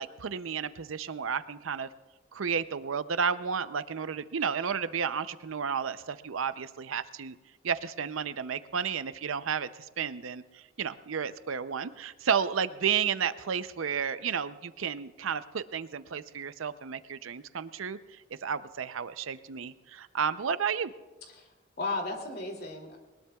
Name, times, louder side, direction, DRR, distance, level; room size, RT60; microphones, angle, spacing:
voice 1, 0.0-1.9 2.3-7.4 7.6-9.7 10.0-18.0 18.4-20.9, right 7 dB, 85° right, 13 dB, 0.6 m, -32 dB
voice 2, 21.3-23.0, left 2 dB, 50° left, 2 dB, 2.7 m, -35 dB
21.0 x 20.0 x 2.3 m, 1.2 s
head